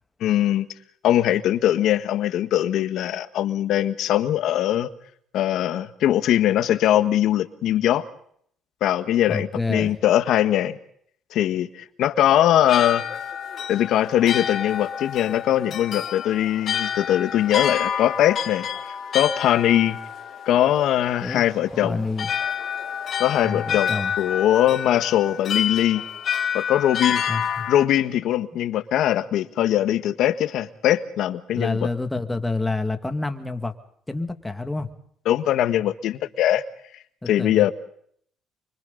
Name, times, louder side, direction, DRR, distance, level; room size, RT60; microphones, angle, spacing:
voice 1, 0.2-0.7 1.0-4.9 5.3-8.0 8.8-10.8 11.3-13.0 13.7-20.0 20.4-22.1 23.2-26.0 26.5-27.2 27.7-31.8 35.3-36.6 37.3-37.7, left 12 dB, 70° left, 10 dB, 1.6 m, -21 dB
voice 2, 9.3-9.9 21.2-21.4 21.7-22.3 23.4-24.1 27.3-27.7 31.5-33.7 34.1-34.9 37.2-37.7, left 3 dB, 10° left, 7 dB, 2.1 m, -28 dB
sound 1, 12.4-27.9, left 8 dB, 55° left, 1.9 m, -29 dB
30.0 x 24.5 x 4.0 m, 0.65 s
cardioid pair, 95°, 0 cm